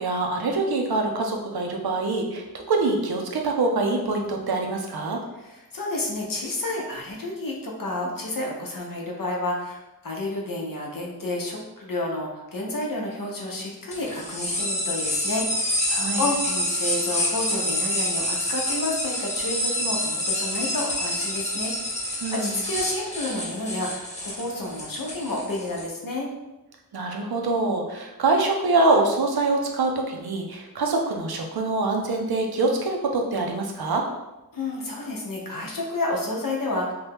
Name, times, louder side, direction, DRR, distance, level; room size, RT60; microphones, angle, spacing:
voice 1, 0.0-5.2 15.9-16.2 22.2-22.6 26.9-34.1, right 3 dB, 75° right, 2 dB, 0.6 m, -24 dB
voice 2, 5.5-26.3 34.5-36.9, left 2 dB, 60° left, -2 dB, 0.7 m, -30 dB
sound 1, 13.9-25.9, left 1 dB, 20° left, 0.7 m, -28 dB
2.8 x 2.2 x 3.3 m, 1.0 s
wide cardioid pair, 75°, 38 cm